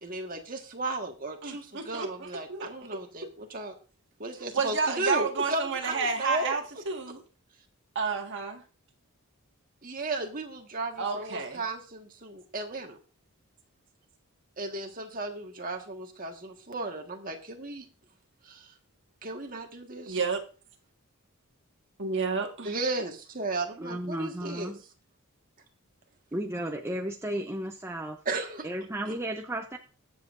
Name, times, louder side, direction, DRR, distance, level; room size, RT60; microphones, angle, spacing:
voice 1, 0.0-3.7 4.2-6.5 9.8-13.0 14.6-17.9 18.4-18.7 19.2-20.2 22.6-24.7 28.3-28.7 29.1-29.2, right 2 dB, 40° right, 3 dB, 1.6 m, -35 dB
voice 2, 1.4-2.7 4.5-7.2 8.0-8.6 11.0-11.6 20.1-20.4 22.0-22.7, right 5 dB, 55° right, 3 dB, 1.7 m, -30 dB
voice 3, 23.8-24.8 26.3-28.2 28.6-29.8, right 1 dB, 10° right, 3 dB, 0.6 m, -34 dB
20.5 x 7.4 x 2.6 m, 0.36 s
head